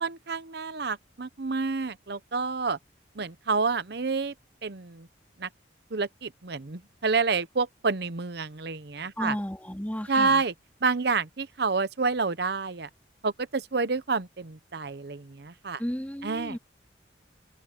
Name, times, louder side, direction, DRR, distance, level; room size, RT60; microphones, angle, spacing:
voice 1, 0.0-2.8 3.2-4.3 4.6-5.1 5.4-5.5 5.9-9.4 10.1-10.5 10.8-12.9 13.2-15.8 16.2-16.6, right 4 dB, 60° right, 0.8 m, -28 dB
voice 2, 9.2-10.4 15.8-16.6, equal, 10° left, 2.6 m, -33 dB
open air
head